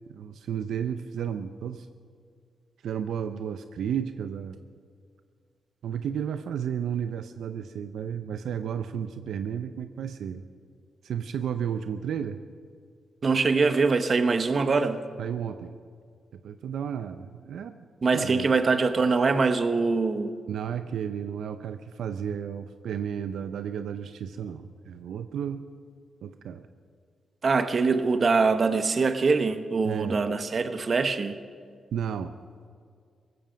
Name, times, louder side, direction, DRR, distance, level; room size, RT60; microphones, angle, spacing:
voice 1, 0.1-1.9 2.8-4.6 5.8-10.4 11.0-12.4 15.2-15.8 16.3-17.8 18.1-18.5 20.5-25.6 26.2-26.6 29.8-30.2 31.9-32.3, right 8 dB, 85° right, 9 dB, 0.6 m, -33 dB
voice 2, 13.2-15.0 18.0-20.4 27.4-31.4, right 4 dB, 45° right, 10 dB, 1.1 m, -23 dB
18.5 x 15.0 x 5.2 m, 2.2 s
cardioid pair, 80°, 0 cm